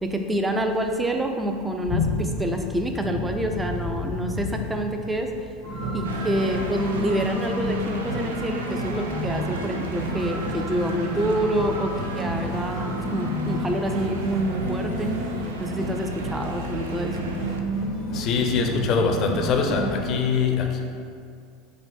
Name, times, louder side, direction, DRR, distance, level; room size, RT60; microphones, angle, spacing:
voice 1, 0.0-2.0 2.4-5.3 5.9-15.2 15.6-17.3, right 1 dB, 10° right, 4 dB, 0.4 m, -27 dB
voice 2, 1.9-2.4 3.0-3.3 3.5-4.0 4.3-4.5 18.1-20.8, left 5 dB, 50° left, 3 dB, 0.5 m, -24 dB
sound 1, 5.6-20.1, right 1 dB, 70° right, 0.9 m, -30 dB
sound 2, 6.0-17.6, right 3 dB, 85° right, 0.3 m, -39 dB
4.7 x 2.1 x 3.4 m, 2.2 s
hypercardioid pair, 90°, 0 cm